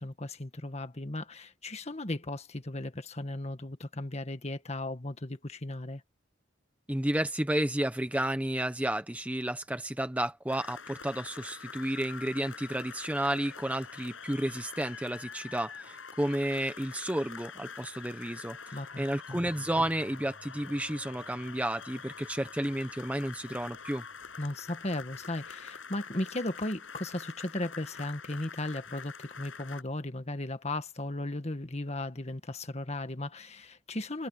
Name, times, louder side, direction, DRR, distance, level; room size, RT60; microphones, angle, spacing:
voice 1, 0.0-6.0 18.7-19.4 24.4-34.3, left 1 dB, 35° left, 1.7 m, -36 dB
voice 2, 6.9-24.0, right 1 dB, 5° right, 0.8 m, -32 dB
sound 1, 10.5-29.8, left 5 dB, 80° left, 7.6 m, -46 dB
Bass guitar, 19.3-25.5, equal, 30° right, 7.9 m, -60 dB
head